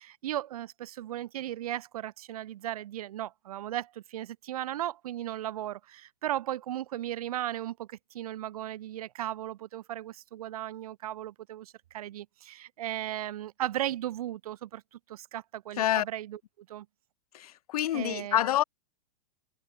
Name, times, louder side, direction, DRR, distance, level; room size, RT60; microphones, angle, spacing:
voice 1, 0.0-16.9 17.9-18.5, right 13 dB, 75° right, 1.9 m, -36 dB
voice 2, 17.3-18.6, left 12 dB, 80° left, 0.9 m, -27 dB
supercardioid pair, 155°, 19 cm